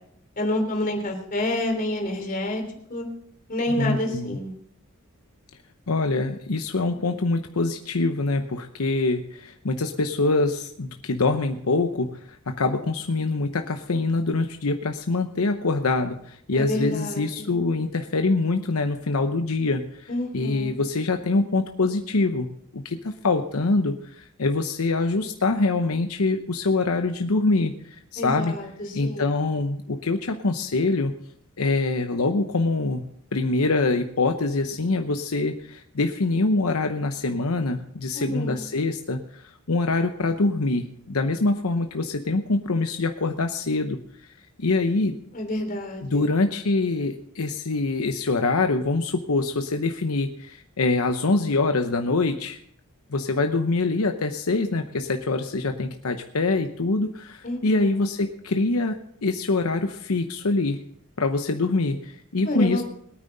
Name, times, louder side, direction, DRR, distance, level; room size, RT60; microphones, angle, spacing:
voice 1, 0.4-2.6 2.9-3.1 3.5-4.5 16.5-17.5 20.1-20.8 28.2-28.7 29.0-29.3 38.1-38.6 45.3-46.2 57.4-57.9 62.4-62.8, left 1 dB, 40° left, 2 dB, 3.1 m, -28 dB
voice 2, 3.7-4.4 5.9-27.7 28.1-28.5 28.9-31.1 31.6-44.0 44.6-45.2 46.0-52.6 53.1-60.8 61.2-62.8, left 3 dB, 80° left, 6 dB, 0.9 m, -24 dB
21.5 x 9.4 x 4.0 m, 0.68 s
head